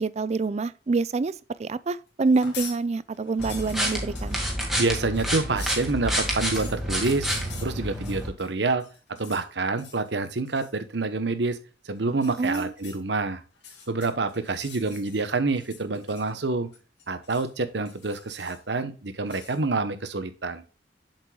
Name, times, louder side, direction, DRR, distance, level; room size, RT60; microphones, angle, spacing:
voice 1, 0.0-1.3 1.6-4.4 12.4-12.7, right 3 dB, 35° right, 0.4 m, -26 dB
sound 1, 2.2-2.8 3.1-8.5 8.8-9.5 9.8-10.1 10.5-10.8 12.1-13.0 13.5-15.3 15.6-16.5 16.7-17.5 17.9-18.7 19.3-19.6, left 6 dB, 70° left, 2.5 m, -45 dB
sound 2, 3.4-8.3, equal, ahead, 2.0 m, -29 dB
voice 2, 4.8-7.3 7.6-8.8 9.2-11.6 11.8-13.4 13.9-16.7 17.1-20.6, right 3 dB, 70° right, 1.0 m, -27 dB
7.7 x 7.4 x 2.3 m
head